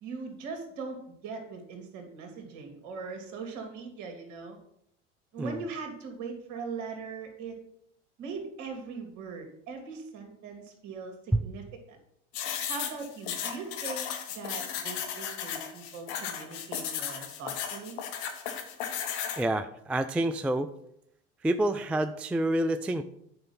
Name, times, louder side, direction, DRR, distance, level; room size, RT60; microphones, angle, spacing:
voice 1, 0.0-4.6 5.3-7.6 8.2-12.0 12.7-14.1 14.3-18.0, right 4 dB, 55° right, 4 dB, 2.7 m, -40 dB
sound 1, 12.3-19.4, left 8 dB, 65° left, 1.6 m, -35 dB
voice 2, 19.4-20.7 21.4-23.0, right 1 dB, 5° right, 10 dB, 0.3 m, -28 dB
9.6 x 5.4 x 5.7 m, 0.75 s
hypercardioid pair, 80°, 36 cm